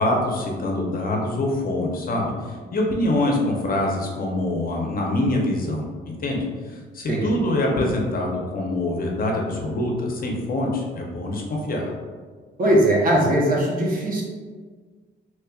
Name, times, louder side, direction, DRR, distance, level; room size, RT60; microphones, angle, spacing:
voice 1, 0.0-11.9, left 1 dB, 45° left, -1 dB, 0.7 m, -25 dB
voice 2, 12.6-14.2, right 1 dB, 45° right, -3 dB, 0.9 m, -20 dB
3.2 x 3.0 x 2.3 m, 1.5 s
cardioid pair, 90°, 20 cm